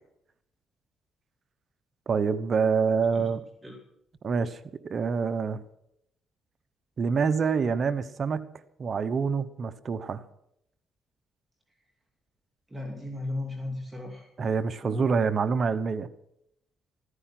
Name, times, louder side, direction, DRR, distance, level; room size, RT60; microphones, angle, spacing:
voice 1, 2.1-3.4 4.2-4.6 4.8-5.6 7.0-8.5 8.8-10.2 14.4-16.1, right 5 dB, 45° right, 11 dB, 1.0 m, -26 dB
voice 2, 12.7-14.3 14.8-15.0, left 2 dB, 15° right, 1 dB, 2.9 m, -36 dB
15.0 x 14.0 x 6.1 m, 0.76 s
cardioid pair, 90°, 0 cm